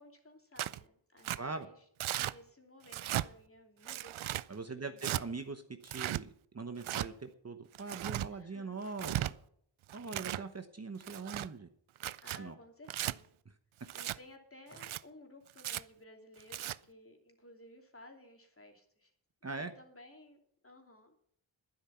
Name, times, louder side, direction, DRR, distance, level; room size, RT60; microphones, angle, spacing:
voice 1, 0.0-1.8 2.2-4.4 4.7-5.0 8.3-8.8 12.2-13.4 13.9-19.1 19.6-21.2, left 1 dB, 30° left, 3 dB, 2.9 m, -57 dB
Tearing, 0.6-0.8 1.2-1.4 2.0-2.3 2.9-3.3 3.9-4.4 5.0-5.2 5.8-6.2 6.8-7.1 7.7-8.3 8.9-9.3 9.9-10.4 11.0-11.5 12.0-12.4 12.9-13.1 13.9-14.2 14.7-15.0 15.6-15.8 16.4-16.8, right 13 dB, 85° right, 0.6 m, -36 dB
voice 2, 1.3-1.7 4.5-9.3 9.9-11.7 12.4-12.5 19.4-19.7, right 4 dB, 30° right, 8 dB, 1.0 m, -42 dB
12.0 x 10.0 x 5.8 m, 0.68 s
wide cardioid pair, 115°, 47 cm